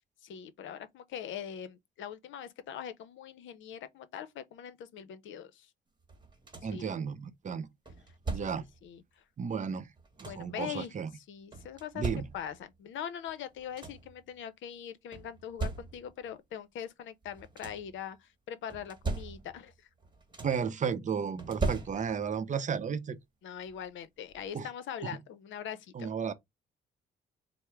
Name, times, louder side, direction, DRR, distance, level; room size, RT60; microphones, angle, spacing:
voice 1, 0.2-5.7 6.7-6.9 8.4-8.5 8.8-9.0 10.3-10.9 11.3-12.0 12.3-19.7 23.4-26.1, left 9 dB, 75° left, 0.6 m, -42 dB
sound 1, 6.1-6.9 7.9-8.8 9.7-10.6 11.5-12.7 13.3-13.4 13.6-14.2 15.1-16.3 17.2-18.0 18.7-19.7 20.0-20.8 21.4-22.4 23.7-23.8 24.3-24.5, right 3 dB, 25° right, 1.1 m, -39 dB
voice 2, 6.6-7.7 8.3-8.7 9.4-9.9 10.2-11.1 11.9-12.3 20.4-23.2 24.5-24.7 25.0-25.2 25.9-26.3, right 6 dB, 40° right, 0.6 m, -33 dB
4.3 x 2.0 x 3.5 m
cardioid pair, 90°, 20 cm